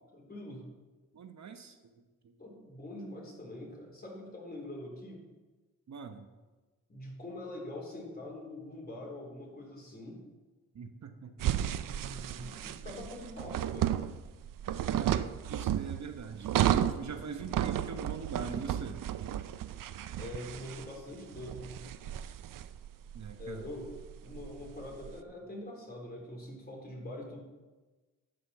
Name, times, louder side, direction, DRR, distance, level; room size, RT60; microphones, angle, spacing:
voice 1, 0.1-0.6 2.4-5.2 6.9-10.2 11.4-14.0 20.2-21.8 23.4-23.9 24.2-27.4, left 1 dB, 30° left, -1 dB, 3.8 m, -44 dB
voice 2, 1.1-1.8 2.2-2.3 5.9-6.3 10.7-11.7 14.9-19.0 23.1-23.7, right 5 dB, 55° right, 7 dB, 1.0 m, -43 dB
sound 1, 11.4-25.1, right 11 dB, 70° right, 0.6 m, -33 dB
11.5 x 5.3 x 7.2 m, 1.2 s
cardioid pair, 70°, 33 cm